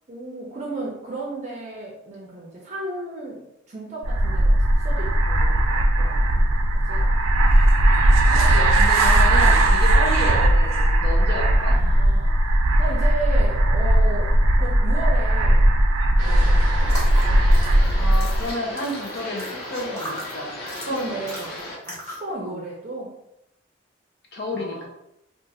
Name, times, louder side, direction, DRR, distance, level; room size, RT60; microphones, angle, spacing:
voice 1, 0.1-6.3 6.7-7.2 8.2-8.6 9.1-9.2 9.9-10.1 11.5-12.4 12.8-15.8 16.2-17.0 20.9-23.2 24.5-24.9, right 2 dB, 35° right, -2 dB, 0.5 m, -34 dB
sound 1, 4.0-18.5, right 1 dB, 90° right, 0.5 m, -18 dB
voice 2, 8.3-11.8 17.9-21.2 22.4-22.6 24.3-24.9, left 1 dB, 50° left, 0 dB, 0.6 m, -31 dB
sound 2, 16.2-21.8, left 1 dB, 90° left, 1.0 m, -35 dB
sound 3, 16.8-22.3, equal, 15° left, 0.8 m, -38 dB
2.4 x 2.4 x 4.0 m, 0.81 s
head